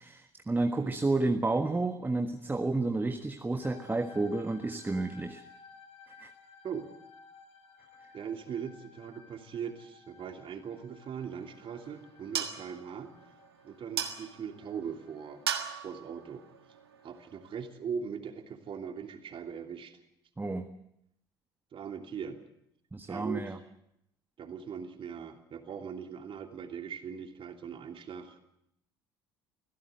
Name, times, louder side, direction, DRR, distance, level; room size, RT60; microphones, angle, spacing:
voice 1, 0.0-5.4 6.1-6.3 20.4-20.7 22.9-23.6, right 2 dB, 15° right, 6 dB, 1.5 m, -31 dB
sound 1, 3.6-17.1, left 5 dB, 55° left, 5.9 m, -57 dB
voice 2, 8.1-13.1 13.6-15.4 15.8-16.4 17.0-20.0 21.7-22.4 23.1-23.6 24.4-28.4, right 7 dB, 45° right, 4 dB, 2.9 m, -40 dB
sound 2, 11.2-17.6, right 8 dB, 80° right, 1.6 m, -40 dB
25.0 x 17.0 x 7.8 m, 0.78 s
figure-of-eight pair, 55°, 13 cm